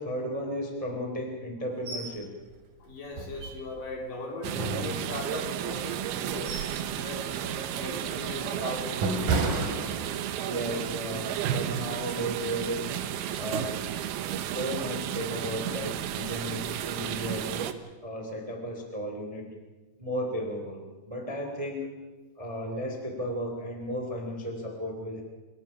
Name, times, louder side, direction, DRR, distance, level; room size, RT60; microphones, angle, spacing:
voice 1, 0.0-2.3 10.4-12.9 13.4-13.9 14.5-17.7 18.0-19.5 20.0-21.9 22.4-25.2, equal, 10° right, 2 dB, 1.8 m, -34 dB
sound 1, 1.9-2.2 2.5-2.6 3.1-3.9 4.4-5.5 6.0-6.8 7.2-7.5 8.0-10.5 10.9-11.1, right 3 dB, 50° right, 3.7 m, -32 dB
voice 2, 2.8-6.6 6.9-9.4, left 2 dB, 45° left, 1 dB, 4.5 m, -39 dB
sound 2, 4.4-17.7, right 10 dB, 75° right, 2.4 m, -33 dB
sound 3, 7.3-7.6 9.3-9.5 11.3-11.5 13.3-13.5 15.3-15.4 17.3-17.4, left 1 dB, 15° left, 6.8 m, -49 dB
27.0 x 22.5 x 5.6 m, 1.2 s
omnidirectional pair, 5.6 m